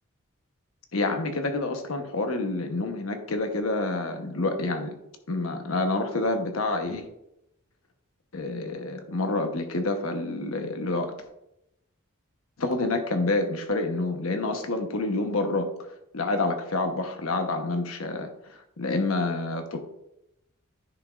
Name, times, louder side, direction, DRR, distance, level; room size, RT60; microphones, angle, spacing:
voice 1, 0.9-4.9 5.3-7.0 8.3-11.1 12.6-15.7 16.1-19.8, left 2 dB, 75° left, 6 dB, 1.0 m, -28 dB
10.0 x 5.9 x 2.5 m, 0.84 s
head